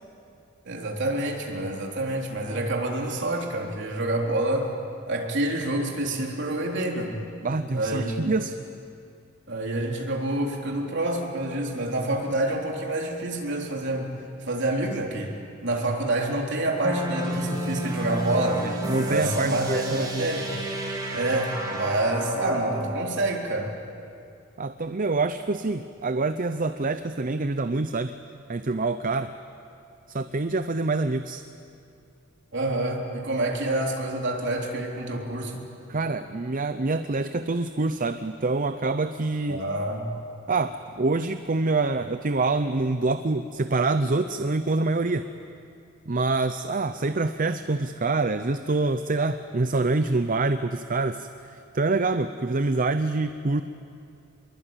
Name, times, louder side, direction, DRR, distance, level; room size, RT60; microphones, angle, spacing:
voice 1, 0.7-4.7 5.1-7.1 7.7-8.3 9.5-14.1 14.5-15.3 15.6-18.7 19.1-20.5 21.1-23.7 32.5-35.7 39.5-40.1, right 1 dB, 55° right, 0 dB, 3.8 m, -27 dB
voice 2, 7.4-8.6 18.6-20.3 24.6-28.1 28.5-29.3 30.1-31.4 35.9-39.6 40.5-45.3 46.1-51.3 51.7-53.6, right 3 dB, 40° right, 10 dB, 0.6 m, -26 dB
sound 1, 16.8-23.0, right 1 dB, 20° right, 3.5 m, -31 dB
25.5 x 22.5 x 9.0 m, 2.5 s
head